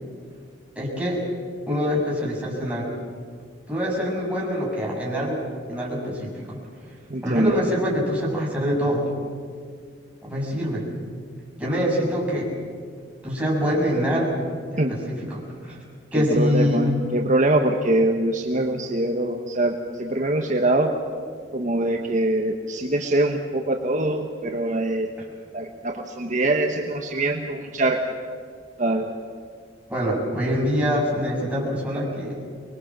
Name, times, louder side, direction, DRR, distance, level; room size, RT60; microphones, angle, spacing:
voice 1, 0.8-1.2 1.7-3.0 3.7-5.4 5.7-6.6 7.2-9.1 10.2-10.9 11.6-12.5 13.2-14.4 14.7-15.8 16.1-16.9 29.9-32.4, equal, 5° right, -5 dB, 7.3 m, -25 dB
voice 2, 7.1-7.6 14.8-14.9 16.1-20.9 21.5-25.1 25.5-28.0 28.8-29.1, right 1 dB, 45° right, 2 dB, 1.4 m, -23 dB
25.5 x 21.5 x 7.6 m, 2.1 s
head